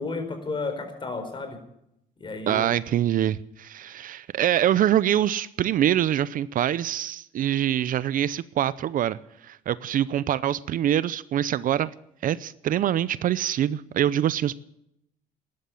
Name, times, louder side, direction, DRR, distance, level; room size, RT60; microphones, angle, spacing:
voice 1, 0.0-1.6 2.2-2.7, left 3 dB, 30° left, 4.4 m, -32 dB
voice 2, 2.5-11.9 12.2-14.6, right 11 dB, 55° right, 0.6 m, -24 dB
14.0 x 11.5 x 8.6 m
cardioid pair, 110°, 17 cm